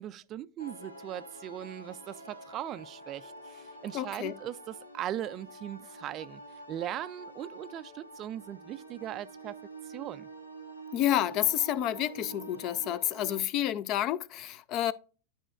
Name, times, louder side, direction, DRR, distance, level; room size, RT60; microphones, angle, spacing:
voice 1, 0.0-6.4 6.7-9.6 9.9-10.3, right 12 dB, 35° right, 0.3 m, -39 dB
sound 1, 0.6-13.4, right 2 dB, 85° left, 0.9 m, -47 dB
voice 2, 3.9-4.4 10.9-14.9, left 12 dB, 40° left, 0.4 m, -29 dB
12.0 x 5.0 x 2.3 m
figure-of-eight pair, 90°, 0 cm